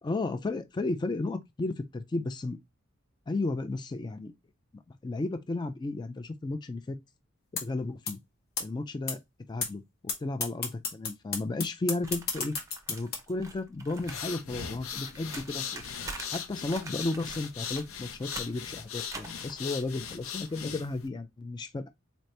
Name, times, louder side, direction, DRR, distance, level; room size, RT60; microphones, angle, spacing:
voice 1, 0.0-2.6 3.3-4.3 4.9-7.0 7.6-8.2 8.6-9.2 9.5-9.8 10.2-12.5 12.9-15.8 16.3-21.9, left 2 dB, 20° left, 0.3 m, -33 dB
sound 1, 7.6-7.7 8.1-8.2 8.6-8.7 9.1-9.2 9.6-9.7 10.1-10.2 10.4-13.2, left 5 dB, 50° left, 1.1 m, -30 dB
sound 2, 12.0-14.3 14.5-20.6, right 3 dB, 15° right, 0.7 m, -45 dB
sound 3, 13.9-21.1, left 7 dB, 90° left, 0.6 m, -39 dB
4.1 x 2.8 x 3.2 m
head